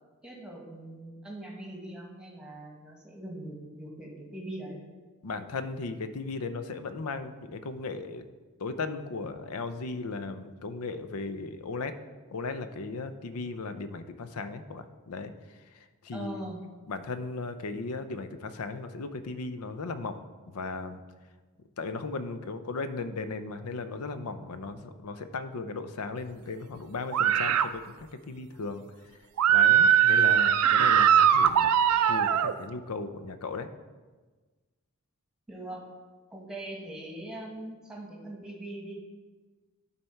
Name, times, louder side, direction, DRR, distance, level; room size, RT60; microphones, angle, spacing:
voice 1, 0.2-4.8 16.1-16.6 35.5-35.8 36.3-38.9, right 1 dB, 5° right, -1 dB, 1.4 m, -41 dB
voice 2, 5.2-8.3 8.6-12.0 12.3-16.4 16.9-21.0 21.8-28.8 29.5-33.7, left 3 dB, 75° left, 11 dB, 0.6 m, -36 dB
sound 1, 27.1-27.7 29.4-32.5, right 9 dB, 80° right, 0.4 m, -21 dB
11.5 x 4.2 x 4.5 m, 1.3 s
head